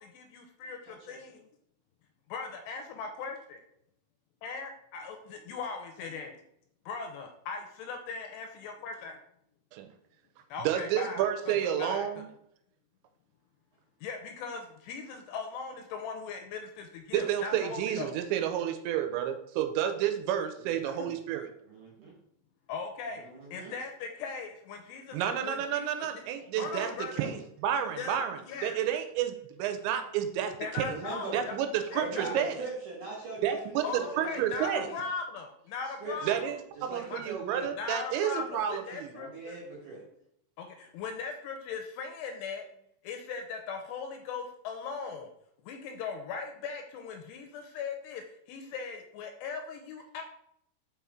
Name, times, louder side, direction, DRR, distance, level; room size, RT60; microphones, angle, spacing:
voice 1, 0.0-1.5 2.3-3.6 4.4-6.4 6.9-9.2 10.5-12.2 14.0-18.2 20.9-21.1 22.7-23.3 23.5-26.1 26.6-27.2 28.0-28.2 28.5-28.8 30.6-31.5 31.9-32.4 33.8-36.6 37.1-37.2 37.8-39.6 40.6-42.7 43.0-45.3 45.7-50.2, left 5 dB, 80° left, 5 dB, 2.6 m, -39 dB
voice 2, 0.8-1.2 20.6-21.0 21.6-22.1 23.2-23.7 27.2-27.3 30.8-31.5 32.0-35.0 36.0-36.4 36.8-37.7 39.1-40.0, right 3 dB, 65° right, -3 dB, 2.1 m, -41 dB
voice 3, 10.6-12.2 17.1-21.5 25.1-31.0 31.3-32.6 33.4-34.9 36.3-39.1, right 10 dB, 85° right, 8 dB, 2.9 m, -30 dB
5.7 x 5.5 x 3.6 m, 0.74 s
omnidirectional pair, 5.2 m